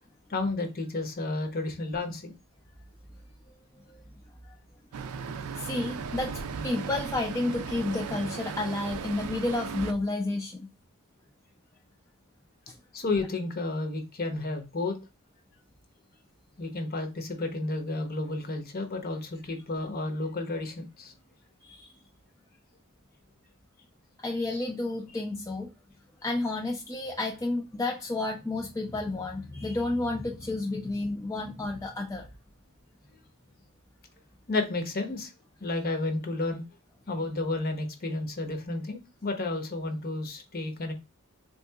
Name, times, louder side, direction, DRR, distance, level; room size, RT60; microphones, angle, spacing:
voice 1, 0.3-2.3 12.9-15.0 16.6-21.1 34.5-35.3 35.6-36.6 37.1-40.9, left 2 dB, 45° left, 6 dB, 0.8 m, -31 dB
Traffic noise roadway noise, 4.9-9.9, right 6 dB, 70° right, 0.4 m, -36 dB
voice 2, 5.6-6.3 6.6-10.7 21.6-21.9 24.2-25.7 26.2-32.3, left 2 dB, 15° left, 0 dB, 0.4 m, -31 dB
3.6 x 2.7 x 2.2 m, 0.28 s
head